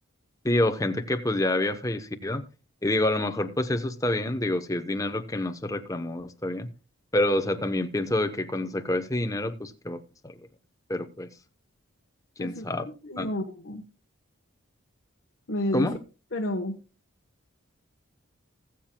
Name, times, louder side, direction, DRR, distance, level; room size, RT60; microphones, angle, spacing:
voice 1, 0.4-2.4 2.8-6.7 7.1-10.3 10.9-11.3 12.4-12.8 13.2-13.3 15.7-16.0, left 1 dB, 15° left, 0.8 m, -27 dB
voice 2, 12.4-13.8 15.5-15.9 16.3-16.8, left 1 dB, 55° left, 1.1 m, -31 dB
20.0 x 7.4 x 2.2 m
head